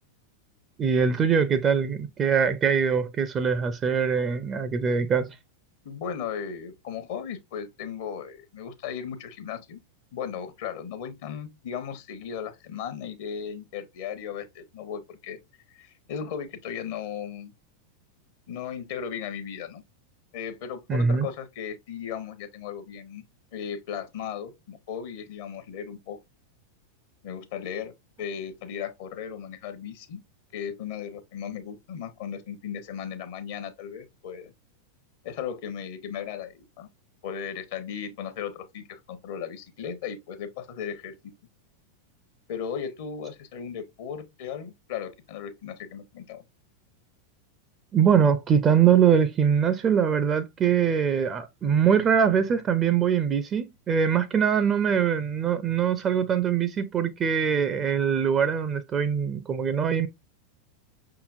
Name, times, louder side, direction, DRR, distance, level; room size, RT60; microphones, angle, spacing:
voice 1, 0.8-5.3 20.9-21.3 47.9-60.1, right 7 dB, 25° right, 0.5 m, -23 dB
voice 2, 5.8-9.8 10.1-15.4 15.7-17.5 18.5-19.8 20.3-23.2 23.5-26.2 27.2-27.9 28.2-30.2 30.5-34.5 35.2-36.9 37.2-41.3 42.5-46.4, left 7 dB, 50° left, 0.8 m, -36 dB
5.6 x 3.8 x 2.4 m
figure-of-eight pair, 90°, 0 cm